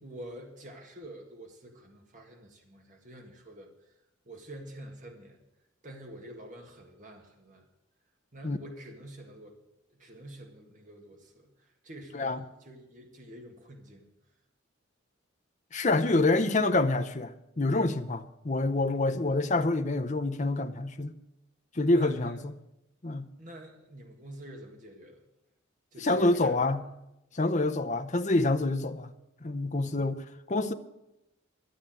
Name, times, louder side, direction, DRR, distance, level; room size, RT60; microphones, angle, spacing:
voice 1, 0.0-3.7 4.3-5.4 5.8-7.6 8.3-9.6 9.9-14.1 21.8-22.4 23.4-25.2 25.9-26.6 29.8-30.1, right 1 dB, 40° right, 1.8 m, -47 dB
voice 2, 15.7-21.1 21.7-22.5 23.0-23.3 26.0-26.8 27.3-29.1 29.4-30.2 30.5-30.7, left 2 dB, 35° left, 0.7 m, -27 dB
12.5 x 8.4 x 8.9 m
head